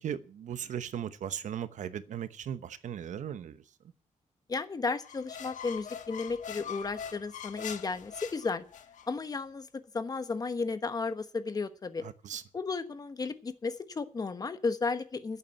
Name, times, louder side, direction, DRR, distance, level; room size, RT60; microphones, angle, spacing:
voice 1, 0.0-3.6 12.0-12.4, right 9 dB, 75° right, 0.9 m, -37 dB
voice 2, 4.5-8.6 9.1-9.7 9.9-12.0 12.5-15.4, left 4 dB, 30° left, 1.2 m, -34 dB
sound 1, 5.0-9.1, left 8 dB, 80° left, 1.5 m, -43 dB
11.5 x 8.3 x 8.7 m
wide cardioid pair, 165°, 13 cm